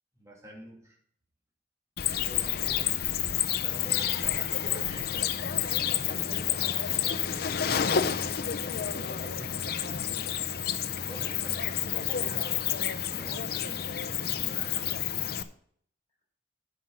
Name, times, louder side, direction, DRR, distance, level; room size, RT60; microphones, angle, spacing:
voice 1, 0.1-1.0 3.5-5.1 8.7-10.1 11.0-15.0, right 1 dB, 20° right, -3 dB, 2.6 m, -47 dB
Cricket, 2.0-15.4, left 9 dB, 60° left, 0.6 m, -29 dB
voice 2, 2.1-2.9 5.4-5.7 6.1-8.3, left 1 dB, 30° left, -3 dB, 4.2 m, -48 dB
9.9 x 6.2 x 5.6 m, 0.63 s
head